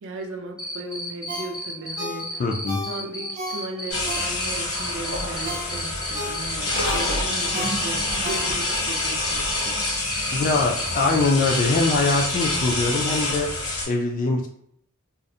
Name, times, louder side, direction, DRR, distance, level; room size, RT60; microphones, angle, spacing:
voice 1, 0.0-2.4 2.9-9.8, right 2 dB, 60° right, 3 dB, 0.5 m, -36 dB
Cricket, 0.6-12.6, left 1 dB, 5° right, 0.6 m, -34 dB
Ringtone, 1.3-4.7 5.1-8.9 9.3-9.4, left 1 dB, 35° right, 0.8 m, -35 dB
voice 2, 2.4-2.8 10.3-13.5 13.9-14.5, left 3 dB, 40° left, 1 dB, 0.3 m, -22 dB
sound 1, 3.9-13.8, left 2 dB, 70° left, 0.8 m, -27 dB
2.4 x 2.0 x 2.6 m, 0.68 s
head